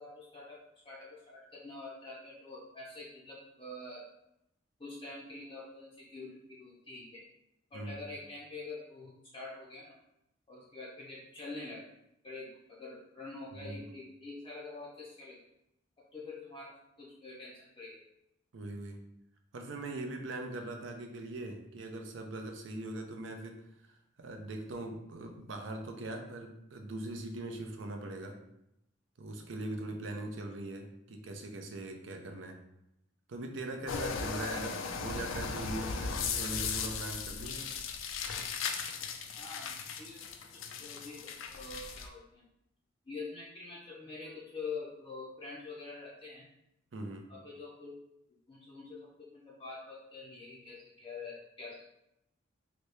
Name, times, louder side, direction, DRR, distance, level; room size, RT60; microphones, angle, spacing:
voice 1, 0.0-4.1 4.8-7.2 7.7-10.0 10.5-11.9 12.2-15.4 16.1-18.0 39.4-42.5 43.1-46.5 47.3-48.0 48.5-51.8, left 3 dB, 25° left, -6 dB, 0.5 m, -46 dB
voice 2, 18.5-19.0 19.5-23.6 23.9-28.4 29.2-32.6 33.3-37.7 46.9-47.3, right 2 dB, 75° right, 4 dB, 0.5 m, -41 dB
sound 1, 33.9-42.1, left 5 dB, 90° left, 0.4 m, -37 dB
2.9 x 2.7 x 3.2 m, 0.81 s
head